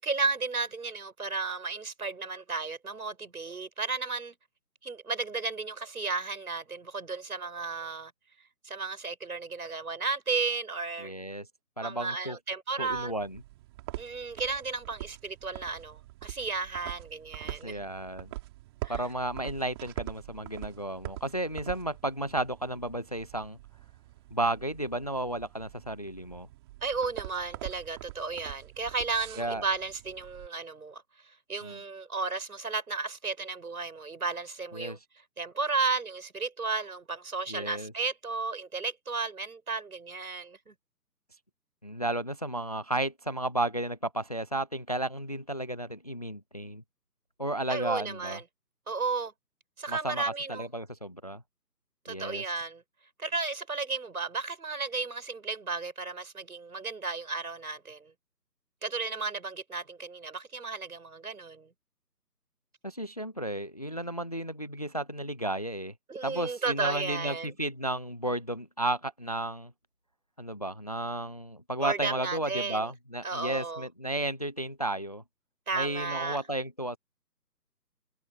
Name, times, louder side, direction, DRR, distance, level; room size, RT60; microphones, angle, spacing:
voice 1, 0.0-4.4 4.8-8.1 8.6-11.1 11.8-13.1 14.0-17.9 18.8-19.0 26.8-31.0 31.5-35.0 35.4-40.7 47.7-48.4 48.9-49.3 49.8-50.7 52.0-52.8 53.2-58.1 58.8-61.7 66.1-67.5 71.8-72.9 73.2-73.9 75.7-76.4, right 4 dB, 60° right, 7.3 m, -33 dB
voice 2, 11.0-11.5 11.8-12.4 12.8-13.4 17.6-18.3 18.9-23.6 24.3-26.5 29.4-29.6 31.6-31.8 34.7-35.0 37.5-37.9 41.8-46.8 47.4-48.4 49.9-51.4 52.1-52.4 62.8-65.9 66.2-69.7 70.4-75.2 75.7-77.0, right 1 dB, 25° left, 0.8 m, -33 dB
sound 1, 12.8-30.5, right 18 dB, 15° right, 4.6 m, -44 dB
figure-of-eight pair, 160°, 50 cm